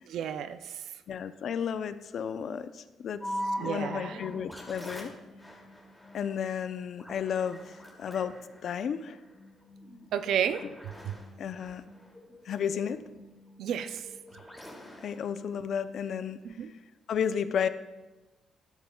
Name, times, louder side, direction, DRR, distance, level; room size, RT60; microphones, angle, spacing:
voice 1, 0.1-0.9 3.6-4.2 10.1-11.2 13.6-14.1 16.4-16.7, right 8 dB, 75° right, 10 dB, 0.4 m, -32 dB
voice 2, 1.1-5.1 6.1-8.3 8.6-9.2 11.4-11.8 12.4-13.0 15.0-16.4 17.1-17.7, left 8 dB, 65° left, 12 dB, 0.5 m, -33 dB
sound 1, 3.2-16.3, equal, 5° left, 2.5 m, -43 dB
12.5 x 10.0 x 2.3 m, 1.1 s
cardioid pair, 90°, 0 cm